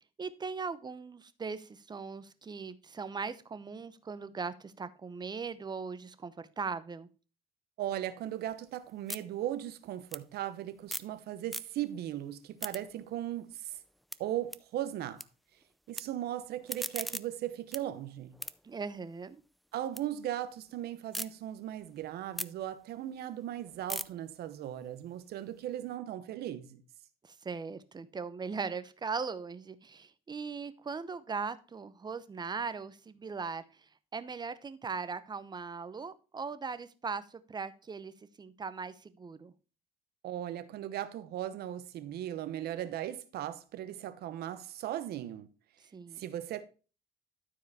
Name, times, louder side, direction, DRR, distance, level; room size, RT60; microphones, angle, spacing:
voice 1, 0.2-7.1 18.6-19.4 27.2-33.6 34.1-38.1 38.4-39.5 45.9-46.2, right 5 dB, 25° right, 0.8 m, -39 dB
voice 2, 7.8-13.7 14.2-15.2 15.9-18.4 19.7-26.8 40.2-45.5 46.2-46.6, right 12 dB, 70° right, 1.0 m, -38 dB
sound 1, 8.2-11.2 11.4-12.0 12.4-15.2 15.5-16.0 16.4-20.0 20.4-21.3 21.7-25.9, equal, ahead, 0.4 m, -43 dB
12.5 x 4.8 x 4.2 m
cardioid pair, 110°, 17 cm